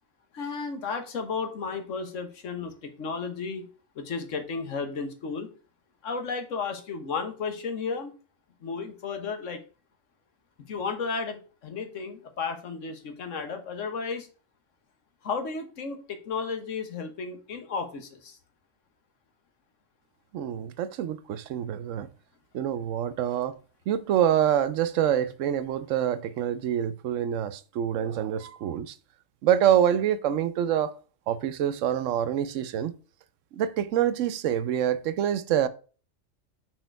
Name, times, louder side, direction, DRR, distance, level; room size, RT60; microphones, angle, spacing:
voice 1, 0.3-3.7 3.9-5.5 6.0-8.1 8.6-9.6 10.7-14.3 15.2-18.4, left 5 dB, 85° left, 1.4 m, -33 dB
voice 2, 20.3-22.1 22.5-23.6 23.9-28.9 29.4-30.9 31.3-32.9 33.5-35.7, right 10 dB, 85° right, 1.0 m, -26 dB
6.3 x 4.3 x 4.5 m
omnidirectional pair, 1.3 m